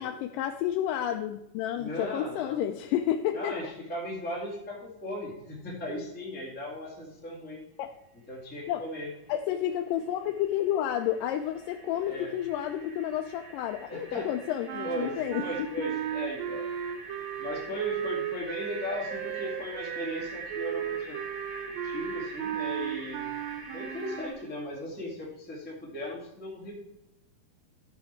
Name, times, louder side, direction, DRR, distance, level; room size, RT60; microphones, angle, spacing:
voice 1, 0.0-3.6 7.8-7.9 8.7-8.8 9.3-15.4, left 11 dB, 85° left, 5 dB, 2.2 m, -30 dB
voice 2, 1.8-2.6 3.3-7.6 8.3-9.1 11.9-12.3 13.9-14.3 14.8-16.6 17.4-21.2 21.8-23.3 23.7-26.8, left 1 dB, 5° left, -4 dB, 1.7 m, -37 dB
sound 1, 9.3-9.4 9.6-24.3, right 3 dB, 50° right, 4.8 m, -45 dB
sound 2, 14.7-24.3, right 10 dB, 90° right, 2.4 m, -35 dB
13.0 x 5.7 x 4.4 m, 0.87 s
omnidirectional pair, 3.8 m